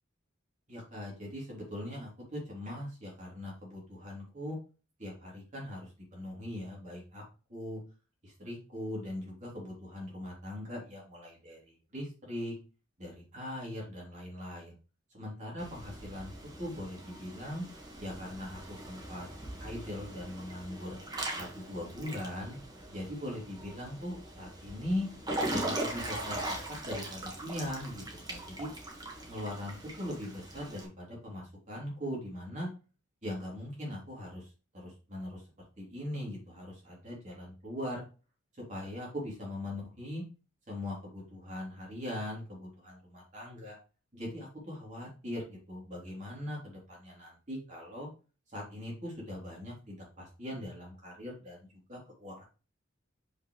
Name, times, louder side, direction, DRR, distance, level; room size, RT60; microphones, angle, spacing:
voice 1, 0.7-4.6 5.0-7.2 7.5-7.8 8.2-12.5 13.0-14.7 15.1-16.3 16.6-17.6 18.0-19.3 19.6-21.0 21.4-22.6 22.9-25.1 25.5-28.0 28.3-28.7 29.2-32.7 33.2-34.5 34.7-35.4 35.8-38.0 38.7-40.2 40.7-43.8 44.1-48.1 48.5-51.6 51.9-52.4, left 1 dB, 40° right, -3 dB, 3.3 m, -40 dB
Water / Splash splatter / Drip, 15.6-30.8, right 1 dB, 20° right, 1.7 m, -40 dB
6.7 x 5.5 x 3.2 m, 0.33 s
head